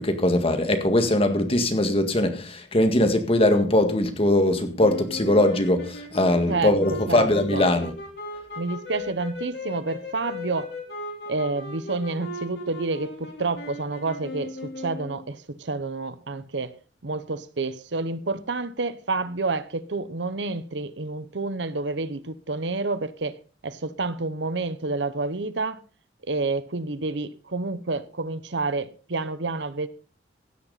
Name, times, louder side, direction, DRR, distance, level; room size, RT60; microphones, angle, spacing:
voice 1, 0.0-7.9, left 1 dB, 35° left, 1.8 m, -21 dB
sound 1, 4.8-15.3, left 1 dB, 65° left, 4.0 m, -37 dB
voice 2, 6.5-7.6 8.6-10.7 11.3-16.7 17.0-23.4 23.6-25.8 26.3-29.9, right 3 dB, 80° right, 1.0 m, -29 dB
16.0 x 10.0 x 4.1 m
head